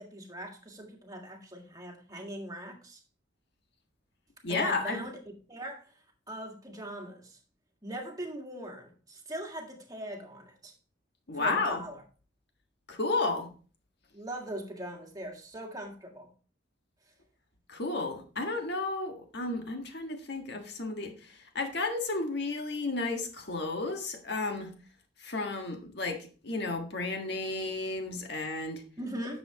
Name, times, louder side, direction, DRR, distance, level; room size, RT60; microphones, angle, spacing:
voice 1, 0.0-3.0 4.5-5.9 6.3-7.4 7.8-10.7 11.3-12.0 14.1-16.3 29.0-29.4, right 1 dB, 20° right, 2 dB, 1.8 m, -41 dB
voice 2, 4.4-5.0 11.3-11.8 12.9-13.5 17.7-24.7 25.2-28.8, left 3 dB, 60° left, 4 dB, 1.6 m, -32 dB
10.0 x 7.1 x 2.9 m, 0.37 s
head